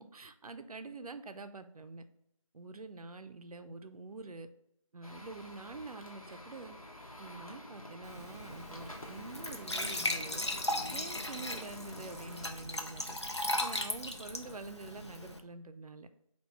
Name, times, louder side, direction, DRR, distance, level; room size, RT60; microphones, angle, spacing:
voice 1, 0.0-2.0 2.5-4.5 4.9-6.8 7.2-10.4 10.9-13.2 13.6-16.1, right 3 dB, 85° right, 10 dB, 0.4 m, -46 dB
sound 1, 5.0-12.5, left 1 dB, 75° left, 0.9 m, -48 dB
Glass / Trickle dribble / Fill (with liquid), 8.0-15.4, left 1 dB, 50° left, 0.4 m, -37 dB
3.7 x 2.3 x 4.3 m, 0.74 s
figure-of-eight pair, 175°, 18 cm